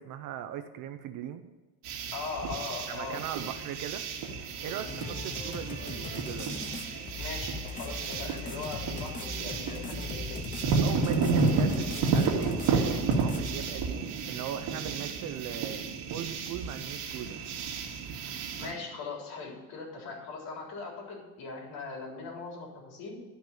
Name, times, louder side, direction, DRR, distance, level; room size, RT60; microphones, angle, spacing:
voice 1, 0.0-1.4 2.9-4.0 4.6-6.6 10.8-15.8 16.1-17.5, right 10 dB, 55° right, 9 dB, 0.8 m, -39 dB
sound 1, 1.8-18.7, right 4 dB, 80° right, 2.2 m, -32 dB
voice 2, 2.1-3.2 4.5-4.8 7.2-10.5 18.6-23.2, left 4 dB, 65° left, -1 dB, 3.9 m, -40 dB
sound 2, 4.8-13.7, left 4 dB, 20° left, 0.8 m, -39 dB
11.5 x 5.9 x 9.1 m, 1.2 s
cardioid pair, 170°, 39 cm